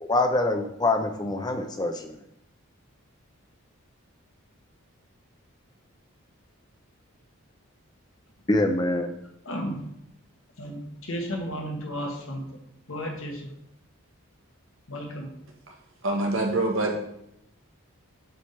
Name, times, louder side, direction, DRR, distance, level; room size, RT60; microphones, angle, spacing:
voice 1, 0.0-2.2 8.5-9.1, left 2 dB, 20° left, 5 dB, 0.6 m, -25 dB
voice 2, 9.4-9.9 10.6-12.5 12.9-13.5 14.9-15.3, equal, 65° left, 2 dB, 1.4 m, -33 dB
voice 3, 16.0-17.0, right 2 dB, 60° right, 1 dB, 1.3 m, -25 dB
7.5 x 3.6 x 4.2 m, 0.78 s
head